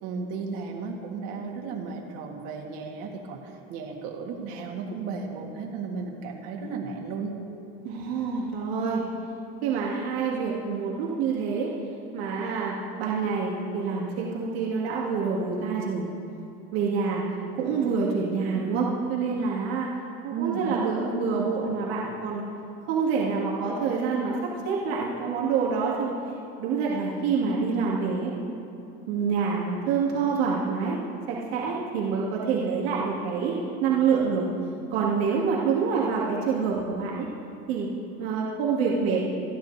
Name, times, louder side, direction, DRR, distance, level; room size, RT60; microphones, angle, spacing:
voice 1, 0.0-7.4 20.3-21.2, right 5 dB, 55° right, 1 dB, 2.0 m, -34 dB
voice 2, 7.8-9.0 9.6-11.7 12.1-16.1 16.7-17.2 17.5-19.9 20.2-22.4 22.9-26.1 26.6-28.3 29.1-31.0 31.3-34.4 34.9-37.3 37.7-37.9 38.2-39.2, right 5 dB, 85° right, -6 dB, 2.6 m, -27 dB
28.0 x 10.5 x 2.9 m, 2.7 s
supercardioid pair, 145°, 30 cm